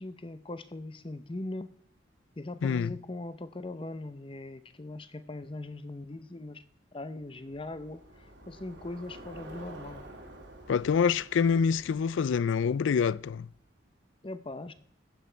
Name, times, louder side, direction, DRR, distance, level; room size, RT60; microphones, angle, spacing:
voice 1, 0.0-1.7 2.4-6.6 6.9-10.0 14.2-14.7, left 2 dB, 30° left, 0.7 m, -40 dB
voice 2, 2.6-2.9 10.7-13.5, left 6 dB, 85° left, 0.4 m, -26 dB
Bicycle, 7.2-13.7, right 1 dB, 80° right, 3.1 m, -50 dB
15.0 x 8.6 x 4.5 m
head